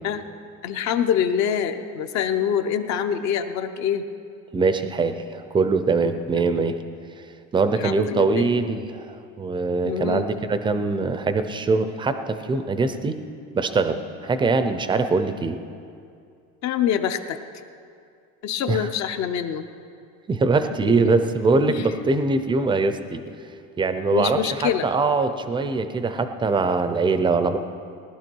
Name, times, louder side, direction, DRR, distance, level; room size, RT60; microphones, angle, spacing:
voice 1, 0.6-4.0 7.8-8.5 9.8-10.3 16.6-17.4 18.4-19.7 20.9-21.0 21.6-21.9 24.1-24.9, left 9 dB, 50° left, 8 dB, 0.8 m, -25 dB
voice 2, 4.5-6.8 7.5-13.2 13.5-15.6 18.7-18.9 20.3-23.2 23.8-27.6, right 3 dB, 15° right, 9 dB, 0.5 m, -22 dB
19.0 x 11.5 x 4.6 m, 2.4 s
cardioid pair, 150°, 34 cm